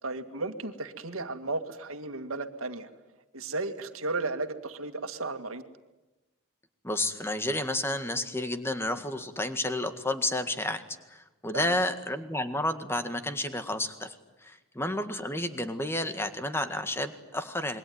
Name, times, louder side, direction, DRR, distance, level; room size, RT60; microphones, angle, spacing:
voice 1, 0.0-2.9 3.3-5.6 11.5-11.7, right 3 dB, 85° right, 7 dB, 2.1 m, -34 dB
voice 2, 6.8-10.8 11.1-14.2 14.4-17.8, left 1 dB, 10° left, 8 dB, 1.8 m, -31 dB
27.0 x 23.0 x 9.5 m, 1.1 s
head